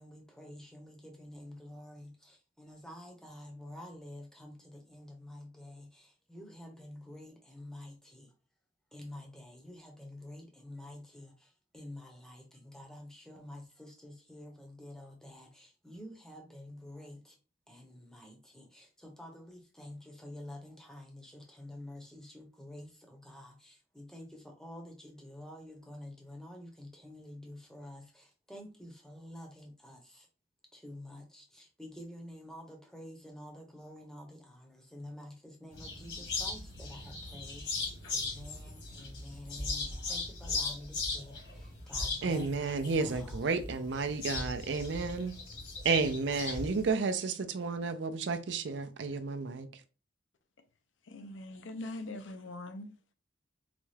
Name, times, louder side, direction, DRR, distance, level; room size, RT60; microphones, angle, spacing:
voice 1, 0.0-8.3 8.9-17.4 17.7-30.3 30.7-43.4, left 1 dB, 5° left, 0.7 m, -49 dB
sound 1, 35.7-46.9, left 3 dB, 65° left, 1.4 m, -38 dB
voice 2, 42.2-45.4 45.8-49.7, right 4 dB, 70° right, 0.5 m, -32 dB
voice 3, 51.0-52.9, left 2 dB, 85° left, 0.6 m, -42 dB
4.0 x 2.3 x 3.2 m
head